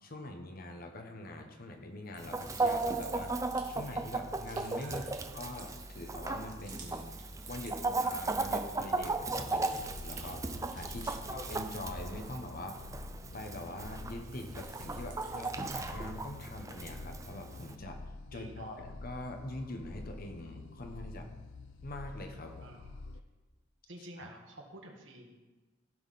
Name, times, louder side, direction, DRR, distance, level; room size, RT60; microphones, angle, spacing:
voice 1, 0.0-3.4 3.7-7.1 7.5-12.9 13.3-21.3 21.8-22.7 24.2-24.3, left 1 dB, 50° left, 4 dB, 1.1 m, -44 dB
sound 1, 2.1-8.5 8.9-13.8 14.1-16.0, right 5 dB, 45° right, 1.8 m, -55 dB
Chicken rooster, 2.2-17.7, right 3 dB, 15° right, 0.5 m, -36 dB
voice 2, 4.8-5.3 11.0-11.2 18.3-18.8 22.6-22.9 23.9-25.4, right 1 dB, 70° right, 1 dB, 1.6 m, -50 dB
sound 2, 9.0-23.2, left 3 dB, 75° left, 0.5 m, -48 dB
15.5 x 5.5 x 4.2 m, 1.2 s
head